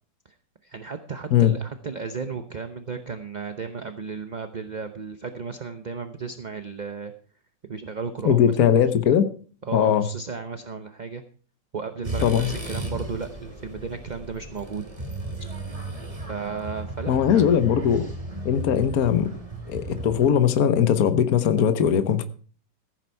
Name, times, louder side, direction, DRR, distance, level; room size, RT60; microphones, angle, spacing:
voice 1, 0.6-7.1 7.7-8.8 9.7-11.2 11.7-14.8 16.3-17.5, right 5 dB, 40° right, 8 dB, 0.6 m, -34 dB
voice 2, 8.2-9.3 9.7-10.1 12.2-12.5 17.1-18.0 18.4-19.3 19.7-22.2, left 8 dB, 60° left, 11 dB, 1.4 m, -20 dB
sound 1, 12.0-20.3, right 1 dB, 20° right, 2.4 m, -35 dB
15.5 x 9.0 x 4.6 m, 0.41 s
omnidirectional pair, 1.8 m